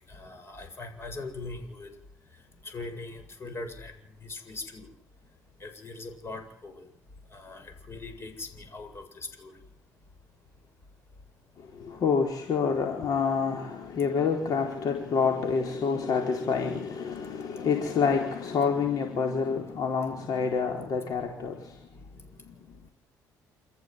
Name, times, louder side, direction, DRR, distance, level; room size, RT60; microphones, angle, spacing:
voice 1, 0.1-1.9 2.6-3.9 4.2-4.9 5.6-6.9 7.3-9.5, left 3 dB, 35° left, 6 dB, 7.9 m, -41 dB
voice 2, 11.7-22.0, left 5 dB, 55° left, 2 dB, 4.5 m, -28 dB
28.5 x 15.0 x 9.5 m, 0.69 s
cardioid pair, 100°, 7 cm